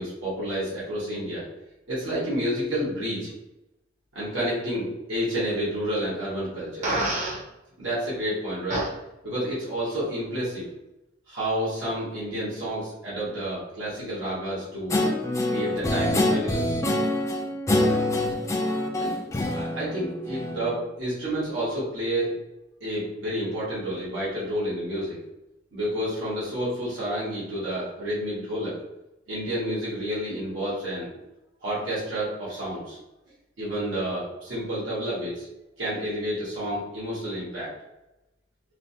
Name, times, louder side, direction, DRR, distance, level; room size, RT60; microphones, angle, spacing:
voice 1, 0.0-1.4 1.9-3.3 4.1-6.9 7.8-8.9 9.2-10.7 11.3-15.0 15.5-16.8 19.0-19.1 19.5-22.4 22.8-25.2 25.7-28.8 29.3-31.1 31.6-33.0 33.6-35.5 35.8-37.7, equal, 90° right, -9 dB, 1.2 m, -30 dB
Fart, 6.8-7.4 8.7-8.9, right 2 dB, 40° right, 0.6 m, -26 dB
Guitar, 14.9-20.7, left 1 dB, 15° left, 0.3 m, -25 dB
3.2 x 2.1 x 2.6 m, 0.94 s
head